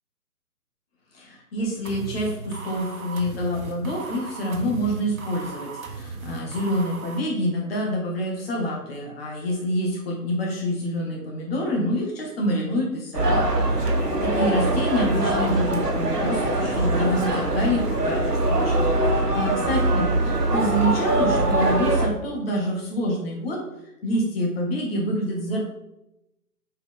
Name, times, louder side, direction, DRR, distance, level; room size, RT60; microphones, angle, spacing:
voice 1, 1.1-13.4 13.8-23.6 24.0-25.6, equal, 40° left, -1 dB, 2.2 m, -27 dB
sound 1, 1.8-7.2, right 4 dB, 60° right, 1.5 m, -37 dB
sound 2, 13.1-22.1, right 1 dB, 80° right, 1.6 m, -22 dB
6.5 x 4.9 x 3.8 m, 0.88 s
figure-of-eight pair, 135°, 47 cm